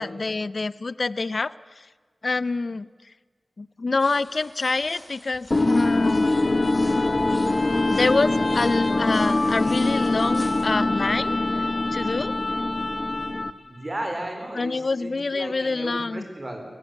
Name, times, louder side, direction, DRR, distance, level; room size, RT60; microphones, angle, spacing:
voice 1, 0.0-1.9 2.2-2.9 3.6-6.3 6.8-7.1 7.9-11.4 11.9-12.3 14.5-16.2, left 3 dB, 60° left, 18 dB, 0.5 m, -26 dB
sound 1, 4.0-10.7, equal, 10° left, 3.8 m, -46 dB
sound 2, 5.5-13.7, left 2 dB, 40° left, 0.9 m, -23 dB
voice 2, 13.6-14.7 15.0-16.6, right 1 dB, 40° right, 3 dB, 4.4 m, -34 dB
20.0 x 16.0 x 8.0 m, 1.5 s
cardioid pair, 50°, 0 cm